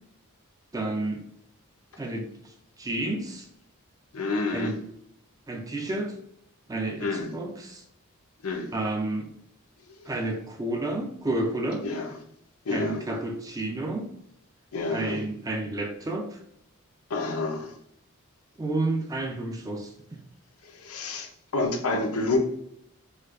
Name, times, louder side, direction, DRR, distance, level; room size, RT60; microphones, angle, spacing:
voice 1, 0.7-1.2 2.0-3.5 4.5-4.8 5.5-6.1 6.7-7.8 8.7-9.3 10.1-11.9 12.7-14.1 14.8-16.4 18.6-20.2, right 2 dB, 15° right, 3 dB, 0.3 m, -31 dB
voice 2, 4.1-4.7 7.0-7.3 8.4-8.7 9.9-10.1 11.8-12.1 12.7-13.1 14.7-15.2 17.1-17.8 20.6-22.4, left 3 dB, 75° left, 4 dB, 0.6 m, -29 dB
4.3 x 2.3 x 2.4 m, 0.73 s
head